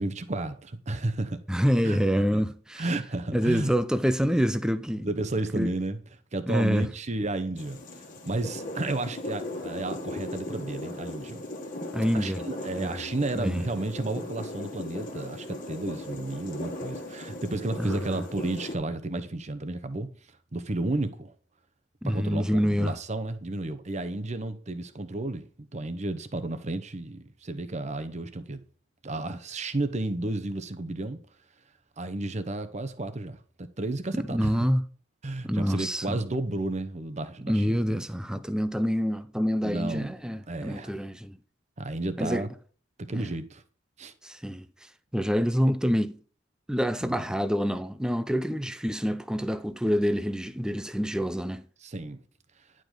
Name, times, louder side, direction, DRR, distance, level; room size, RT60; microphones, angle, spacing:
voice 1, 0.0-1.4 1.8-2.0 2.3-2.4 2.8-3.7 5.0-6.0 6.3-7.8 8.3-11.4 12.1-20.1 20.5-21.3 22.0-28.6 29.0-31.2 32.0-34.5 35.2-37.8 39.6-40.1 40.5-40.9 41.8-42.5 43.1-43.6 44.0-44.1 47.0-47.2 51.8-52.2, right 2 dB, 35° right, 0.8 m, -32 dB
voice 2, 1.5-2.8 3.3-5.1 5.5-5.7 6.5-6.9 11.9-12.4 12.8-13.0 13.3-13.6 17.8-18.3 22.0-23.0 34.1-34.9 35.4-36.2 37.5-41.4 42.2-42.5 43.1-43.3 44.2-44.7 45.1-46.2 46.7-51.6, equal, 5° right, 0.5 m, -27 dB
sound 1, 7.6-18.8, left 1 dB, 45° left, 1.5 m, -38 dB
10.5 x 5.1 x 3.9 m
head